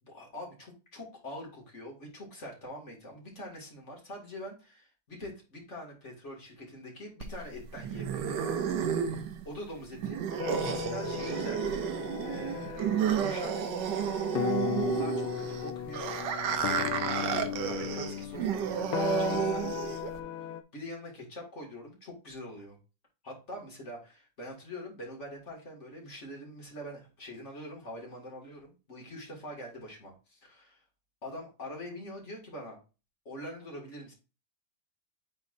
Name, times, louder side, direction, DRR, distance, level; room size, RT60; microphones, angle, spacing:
voice 1, 0.0-8.4 9.5-11.6 12.2-13.6 14.9-16.1 16.7-20.0 20.7-22.8 23.2-30.7 31.2-32.8 33.3-34.1, left 1 dB, 35° left, -1 dB, 2.3 m, -44 dB
sound 1, 7.2-20.2, right 8 dB, 70° right, 1.2 m, -32 dB
sound 2, 10.4-20.6, left 9 dB, 85° left, 1.5 m, -36 dB
9.7 x 3.9 x 2.6 m, 0.31 s
omnidirectional pair, 2.2 m